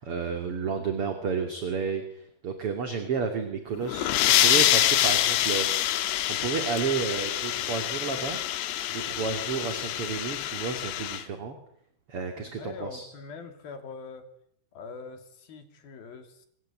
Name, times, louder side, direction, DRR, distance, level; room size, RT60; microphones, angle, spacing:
voice 1, 0.0-5.7 5.9-8.4 8.9-11.6 12.1-13.1, right 5 dB, 40° right, 6 dB, 2.8 m, -31 dB
sound 1, 3.8-11.2, left 13 dB, 90° left, 3.4 m, -26 dB
voice 2, 12.4-14.3 14.7-16.5, left 4 dB, 65° left, 7 dB, 4.6 m, -43 dB
27.0 x 22.0 x 8.7 m, 0.70 s
omnidirectional pair, 4.7 m